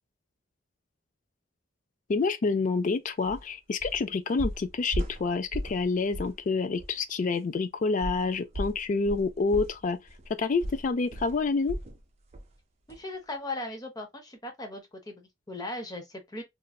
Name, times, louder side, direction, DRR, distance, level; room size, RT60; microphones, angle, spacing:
voice 1, 2.1-10.0 10.3-11.8, left 4 dB, 40° left, 0.4 m, -28 dB
sound 1, 3.2-3.4 3.8-4.0 4.4-5.8 6.1-6.4 6.8-6.9 8.0-12.0 12.3-12.5 12.9-13.0, equal, 35° right, 0.7 m, -36 dB
voice 2, 12.9-16.4, left 2 dB, 20° left, 0.8 m, -38 dB
3.0 x 2.5 x 2.2 m
head